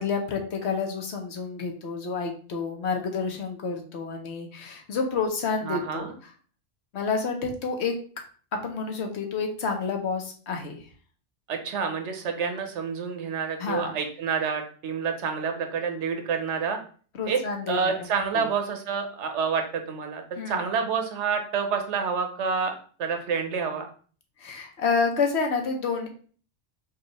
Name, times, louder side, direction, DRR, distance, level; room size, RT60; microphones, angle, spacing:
voice 1, 0.0-6.3 6.9-7.9 8.5-10.8 13.6-14.0 17.1-18.5 20.4-20.6 24.4-26.1, left 5 dB, 70° left, 3 dB, 1.1 m, -29 dB
voice 2, 5.7-6.1 11.5-16.8 17.3-17.4 17.7-20.2 20.5-22.7 23.0-23.9, right 6 dB, 85° right, 5 dB, 1.0 m, -28 dB
4.7 x 2.4 x 3.0 m, 0.42 s
omnidirectional pair, 1.1 m